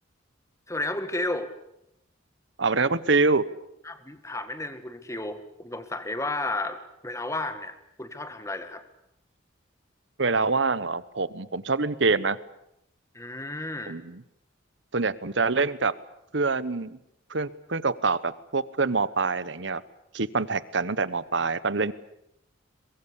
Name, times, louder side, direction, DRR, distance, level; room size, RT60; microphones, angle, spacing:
voice 1, 0.7-1.5 3.9-6.8 7.0-8.8 13.1-14.0, left 2 dB, 15° left, 10 dB, 1.8 m, -32 dB
voice 2, 2.6-3.4 10.2-12.4 13.9-14.2 14.9-15.9 16.3-17.0 17.3-19.8 20.1-21.9, right 4 dB, 65° right, 17 dB, 1.1 m, -25 dB
23.5 x 22.0 x 8.5 m, 0.81 s
head